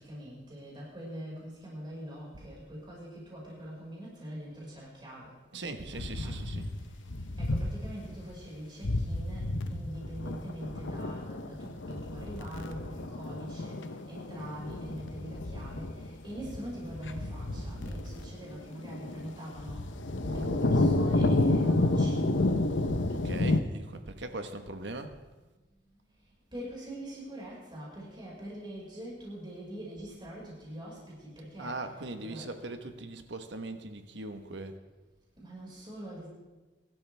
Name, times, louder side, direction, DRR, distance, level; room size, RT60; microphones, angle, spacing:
voice 1, 0.0-5.4 5.6-6.4 6.8-6.9 7.4-19.8 20.2-22.5 26.2-31.8 32.2-32.5 35.4-36.3, right 1 dB, 25° right, -5 dB, 5.4 m, -43 dB
voice 2, 5.5-6.7 8.1-8.2 15.5-15.9 17.5-18.4 20.2-21.0 22.9-25.1 31.6-34.8, right 2 dB, 70° right, 7 dB, 1.3 m, -40 dB
sound 1, 5.9-8.0 8.3-8.4 8.8-23.6, left 2 dB, 90° left, 0.9 m, -31 dB
24.0 x 12.5 x 3.5 m, 1.2 s
head